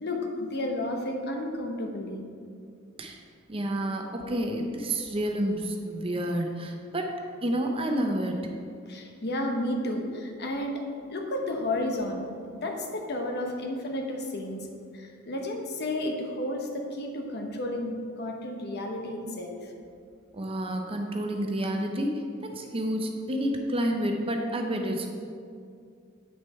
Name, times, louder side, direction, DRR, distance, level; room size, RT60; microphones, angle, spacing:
voice 1, 0.0-2.2 8.9-10.8 11.1-12.3 12.6-14.7 14.9-19.7, left 1 dB, 50° left, 2 dB, 1.0 m, -32 dB
voice 2, 3.5-7.1 7.4-8.5 20.3-25.1, right 1 dB, 25° right, 3 dB, 0.7 m, -29 dB
8.1 x 6.4 x 4.4 m, 2.3 s
head